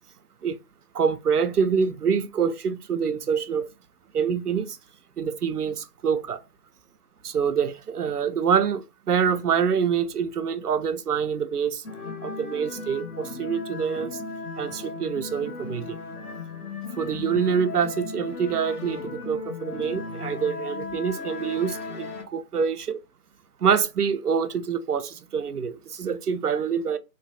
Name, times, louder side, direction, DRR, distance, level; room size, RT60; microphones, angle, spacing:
voice 1, 0.9-3.7 4.1-4.8 5.2-6.4 7.2-11.8 12.2-14.2 14.6-16.0 17.0-23.0 23.6-27.0, right 6 dB, 85° right, 0.5 m, -26 dB
sound 1, 11.8-22.2, left 4 dB, 80° left, 1.0 m, -36 dB
3.0 x 2.1 x 2.6 m
figure-of-eight pair, 170°, 45 cm